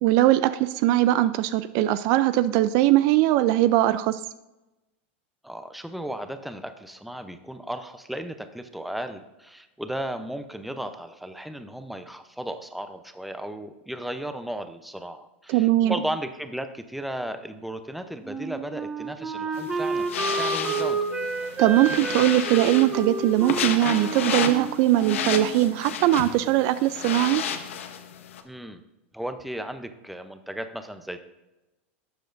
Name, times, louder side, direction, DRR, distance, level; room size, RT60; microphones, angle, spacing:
voice 1, 0.0-4.2 15.5-15.9 21.6-27.4, right 14 dB, 55° right, 14 dB, 0.4 m, -21 dB
voice 2, 5.4-21.0 28.4-28.8 29.1-31.2, right 1 dB, ahead, 8 dB, 0.7 m, -35 dB
Wind instrument woodwind instrument, 18.2-25.8, right 4 dB, 15° right, 1.1 m, -30 dB
sound 1, 19.5-28.4, left 8 dB, 85° left, 0.9 m, -32 dB
12.0 x 7.6 x 2.6 m, 1.0 s
supercardioid pair, 120°, 7 cm